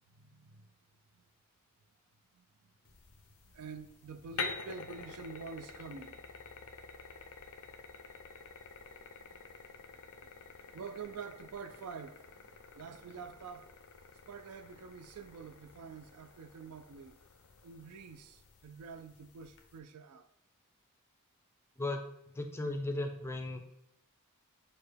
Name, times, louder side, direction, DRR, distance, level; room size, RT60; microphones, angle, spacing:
voice 1, 0.2-0.6 2.3-2.4 3.5-6.2 10.7-12.2 12.7-13.7 14.3-17.2 17.6-20.3, right 5 dB, 85° right, 0.4 m, -47 dB
sound 1, 2.9-19.8, left 5 dB, 75° left, 0.5 m, -48 dB
voice 2, 22.3-23.7, left 2 dB, 10° left, 0.3 m, -36 dB
6.5 x 2.2 x 3.3 m
head